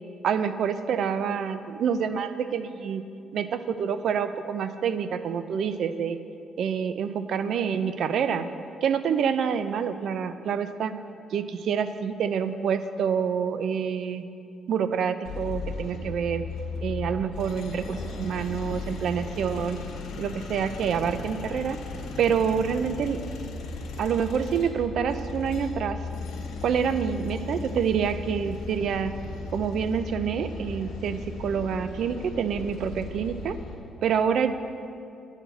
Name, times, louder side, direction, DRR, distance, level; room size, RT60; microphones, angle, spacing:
voice 1, 0.2-3.0 3.3-6.2 6.6-8.5 8.8-10.9 11.3-14.2 14.7-16.5 16.8-19.8 20.2-21.8 22.2-23.2 24.0-26.0 26.6-29.1 29.5-33.6 34.0-34.5, right 7 dB, 70° right, 11 dB, 0.5 m, -27 dB
sound 1, 15.2-33.7, left 3 dB, 85° left, 1.3 m, -36 dB
10.5 x 4.9 x 7.9 m, 2.6 s
cardioid pair, 90°, 0 cm